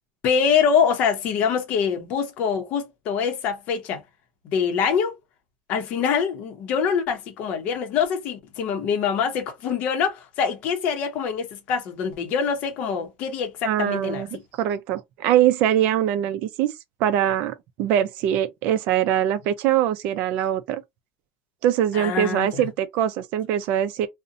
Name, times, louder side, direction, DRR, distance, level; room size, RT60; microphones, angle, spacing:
voice 1, 0.2-4.0 4.4-5.2 5.7-14.2 21.9-22.7, left 6 dB, 45° left, 0.7 m, -24 dB
voice 2, 13.6-14.3 14.6-16.7 17.0-20.8 21.6-24.1, right 11 dB, 50° right, 0.4 m, -22 dB
2.6 x 2.1 x 2.5 m
cardioid pair, 165°, 3 cm